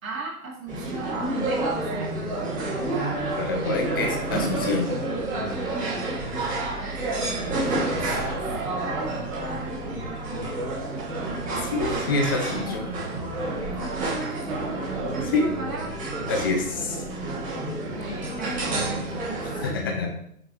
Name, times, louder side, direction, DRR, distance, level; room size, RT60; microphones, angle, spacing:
voice 1, 0.0-2.3 7.8-8.0 8.5-9.1 13.7-16.0 17.9-19.3, right 2 dB, 60° right, -3 dB, 2.8 m, -36 dB
sound 1, 0.7-19.7, right 2 dB, 15° right, 2.4 m, -29 dB
voice 2, 3.4-4.9 11.7-12.8 15.3-15.5 16.3-17.0 19.6-20.1, left 3 dB, 15° left, 2 dB, 0.5 m, -26 dB
6.6 x 5.7 x 3.1 m, 0.71 s
figure-of-eight pair, 125°, 46 cm